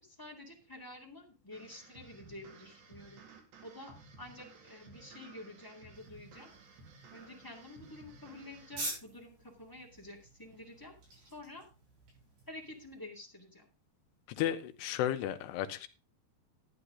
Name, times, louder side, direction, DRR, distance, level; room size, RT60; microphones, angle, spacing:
voice 1, 0.0-3.2 3.6-6.5 7.1-11.7 12.5-13.7, left 1 dB, 20° left, 0.5 m, -50 dB
sound 1, 1.5-8.9, right 3 dB, 85° right, 4.4 m, -56 dB
sound 2, 5.9-13.0, right 1 dB, 65° right, 9.2 m, -48 dB
voice 2, 14.3-15.9, left 11 dB, 85° left, 3.0 m, -34 dB
12.0 x 9.8 x 3.7 m
omnidirectional pair, 4.8 m